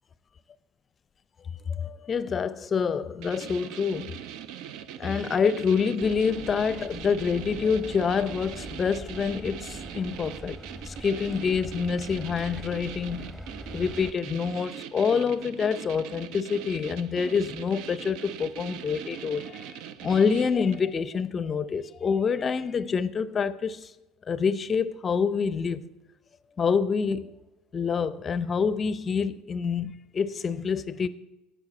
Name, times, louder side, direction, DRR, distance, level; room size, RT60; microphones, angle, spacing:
voice 1, 1.7-4.1 5.0-10.6 10.8-13.3 13.7-23.9 24.3-25.8 26.6-27.3 27.7-31.1, left 6 dB, 35° left, 0.5 m, -27 dB
sound 1, 3.2-20.9, right 9 dB, 60° right, 0.4 m, -41 dB
sound 2, 6.0-14.1, equal, 5° right, 0.9 m, -43 dB
10.5 x 8.1 x 4.3 m
hypercardioid pair, 65°, 0 cm